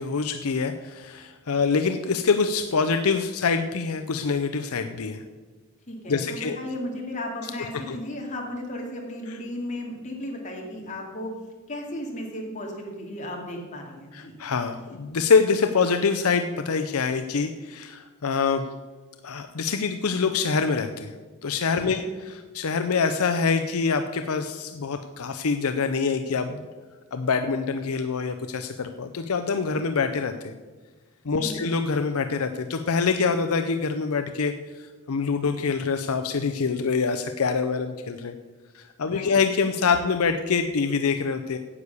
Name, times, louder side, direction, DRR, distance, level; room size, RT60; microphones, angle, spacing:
voice 1, 0.0-5.2 6.1-6.6 7.7-8.0 14.1-18.7 19.2-21.1 21.4-26.6 27.1-30.5 31.3-38.3 38.7-41.6, left 5 dB, 80° left, 8 dB, 0.6 m, -25 dB
voice 2, 5.9-11.3 11.7-14.3 21.8-22.0 31.4-31.6 39.1-39.3, left 1 dB, 35° left, 0 dB, 2.4 m, -35 dB
9.8 x 8.1 x 7.0 m, 1.3 s
head